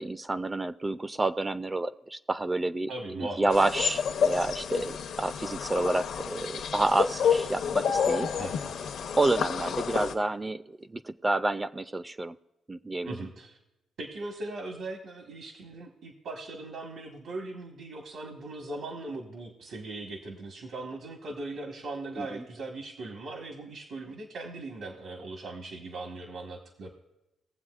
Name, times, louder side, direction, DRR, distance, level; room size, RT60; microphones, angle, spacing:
voice 1, 0.0-8.3 9.2-12.4 12.7-13.2 22.2-22.4, right 2 dB, 20° right, 13 dB, 0.3 m, -29 dB
voice 2, 2.9-3.5 7.2-7.7 8.3-8.8 13.0-13.6 14.0-26.9, right 2 dB, 75° right, 2 dB, 1.3 m, -39 dB
Birdlife at Målsjon in Kristdala Sweden, 3.5-10.1, left 7 dB, 70° left, 0.7 m, -29 dB
20.0 x 7.4 x 2.4 m, 0.96 s
cardioid pair, 90°, 0 cm